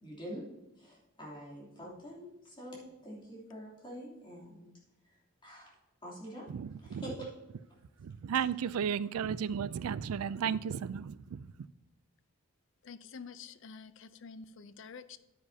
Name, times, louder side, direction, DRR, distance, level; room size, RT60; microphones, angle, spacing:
voice 1, 0.0-0.5 0.8-4.7 5.4-5.7 6.0-6.5 6.8-7.3, equal, 25° left, 3.0 m, -45 dB
voice 2, 6.5-7.0 8.0-11.4, right 7 dB, 85° right, 0.4 m, -34 dB
voice 3, 12.8-15.2, left 5 dB, 60° left, 0.5 m, -48 dB
10.0 x 9.5 x 2.8 m
head